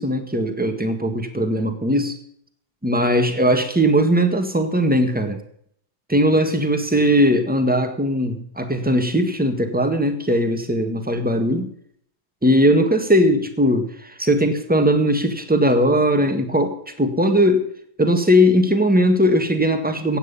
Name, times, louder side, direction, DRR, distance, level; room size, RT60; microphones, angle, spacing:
voice 1, 0.0-2.2 2.8-5.4 6.1-11.7 12.4-17.7 18.0-20.2, equal, 5° right, 6 dB, 1.4 m, -19 dB
16.0 x 9.4 x 5.5 m, 0.66 s
omnidirectional pair, 2.1 m